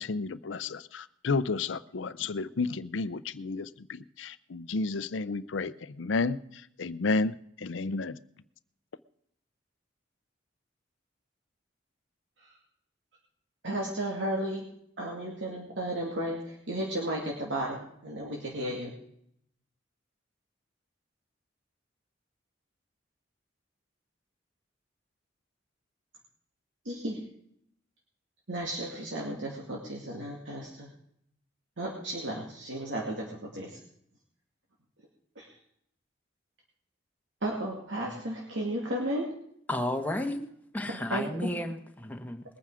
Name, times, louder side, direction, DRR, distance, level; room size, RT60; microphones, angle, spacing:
voice 1, 0.0-8.2, left 3 dB, 80° left, 15 dB, 0.6 m, -32 dB
voice 2, 13.6-14.7 15.0-18.9 26.8-27.2 28.5-30.9 31.8-33.8 35.4-35.5 37.4-39.3 41.1-41.4, right 1 dB, 75° right, -1 dB, 2.5 m, -34 dB
voice 3, 39.7-40.4 40.7-42.4, left 1 dB, 10° left, 3 dB, 1.4 m, -32 dB
21.0 x 9.2 x 4.9 m, 0.71 s
head